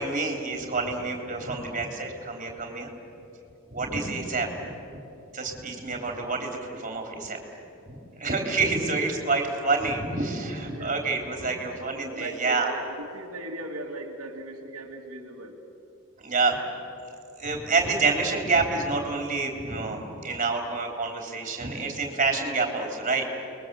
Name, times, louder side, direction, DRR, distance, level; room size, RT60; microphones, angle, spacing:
voice 1, 0.0-2.9 3.7-4.7 5.3-7.4 7.9-12.7 16.2-16.6 17.4-23.2, right 3 dB, 35° right, 3 dB, 3.6 m, -28 dB
voice 2, 10.7-11.1 12.1-15.6, right 2 dB, 80° right, 0 dB, 2.3 m, -39 dB
29.5 x 22.0 x 7.8 m, 2.8 s
head